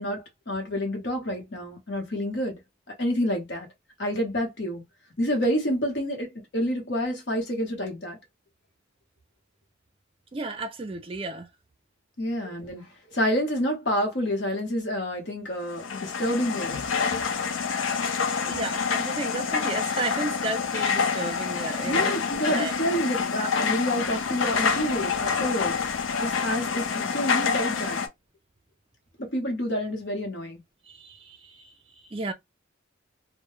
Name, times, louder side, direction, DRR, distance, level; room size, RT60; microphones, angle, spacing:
voice 1, 0.0-2.6 3.0-3.7 4.0-4.8 5.2-8.2 12.2-16.8 21.8-25.8 26.2-28.0 29.2-30.6, equal, 60° left, 1.0 m, -28 dB
voice 2, 10.3-11.5 18.5-22.1 22.4-22.7 32.1-32.3, right 2 dB, 30° right, 0.4 m, -32 dB
sound 1, 15.7-28.1, left 6 dB, 85° left, 0.5 m, -27 dB
2.2 x 2.1 x 3.0 m
head